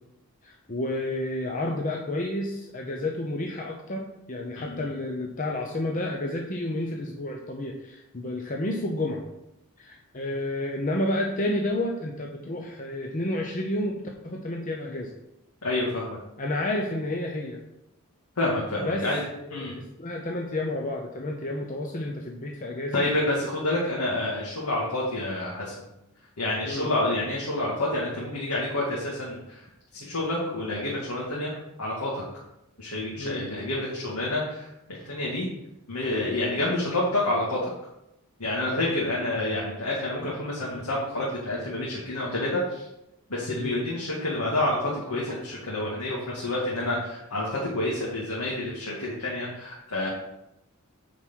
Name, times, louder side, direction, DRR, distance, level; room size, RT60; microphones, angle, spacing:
voice 1, 0.4-9.2 9.8-15.1 16.4-17.6 18.8-19.1 19.4-23.0 26.6-26.9 33.2-33.4 38.7-38.9 43.6-43.8, left 1 dB, 35° left, 1 dB, 0.9 m, -30 dB
voice 2, 4.6-4.9 15.6-16.2 18.4-19.2 19.5-19.8 22.9-25.9 26.4-29.6 29.9-32.2 32.8-34.7 35.1-35.5 35.9-37.7 38.4-42.9 43.3-50.1, left 1 dB, 80° left, -5 dB, 2.2 m, -28 dB
9.5 x 4.7 x 6.2 m, 0.88 s
head